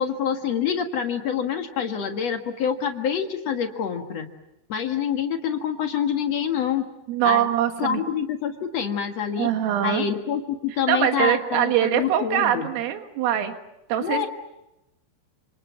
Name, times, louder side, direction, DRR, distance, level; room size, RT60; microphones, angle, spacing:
voice 1, 0.0-4.3 4.7-6.8 7.2-7.4 7.8-9.5 9.8-12.7 14.0-14.3, left 8 dB, 70° left, 5 dB, 1.5 m, -26 dB
voice 2, 7.1-8.0 9.4-10.1 10.7-13.6 13.9-14.3, right 11 dB, 85° right, 7 dB, 4.3 m, -23 dB
29.5 x 27.0 x 7.3 m, 0.90 s
omnidirectional pair, 5.7 m